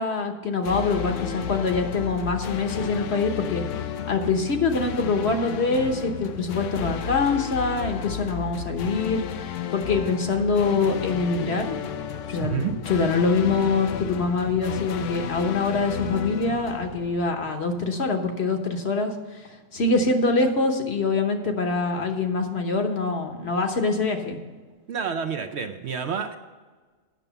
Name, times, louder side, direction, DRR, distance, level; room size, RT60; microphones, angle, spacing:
voice 1, 0.0-3.6 4.1-9.2 9.7-11.8 12.3-19.1 19.7-24.4, left 3 dB, 55° left, 4 dB, 1.2 m, -24 dB
sound 1, 0.6-17.7, left 9 dB, 70° left, 0.9 m, -33 dB
voice 2, 12.4-12.7 24.9-26.4, right 6 dB, 60° right, 7 dB, 0.8 m, -28 dB
9.0 x 6.6 x 7.0 m, 1.4 s
omnidirectional pair, 1.4 m